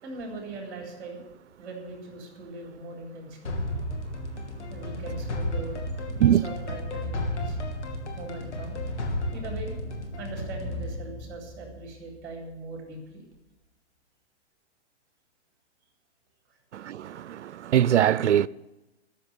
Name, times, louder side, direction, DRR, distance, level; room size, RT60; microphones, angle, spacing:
voice 1, 0.0-1.2 1.6-3.6 4.7-5.8 6.2-7.6 8.2-8.8 9.3-9.7 10.2-13.2, right 2 dB, 30° right, 4.0 m, -40 dB
sound 1, 3.4-12.3, left 1 dB, 75° left, 2.9 m, -33 dB
voice 2, 16.7-18.5, right 10 dB, 75° right, 0.6 m, -22 dB
13.5 x 7.4 x 9.6 m
hypercardioid pair, 140°, 35 cm